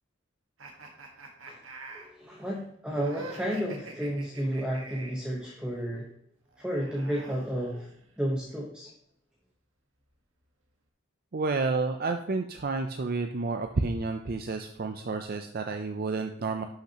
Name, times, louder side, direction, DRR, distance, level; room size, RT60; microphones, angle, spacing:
sound 1, 0.6-5.3 6.5-8.2, right 2 dB, 85° right, 1.5 m, -46 dB
voice 1, 1.9-6.1 6.6-7.9 8.2-8.9, equal, 5° right, -2 dB, 1.0 m, -32 dB
voice 2, 11.3-16.6, right 3 dB, 50° right, 6 dB, 0.5 m, -30 dB
11.5 x 5.8 x 2.9 m, 0.70 s
head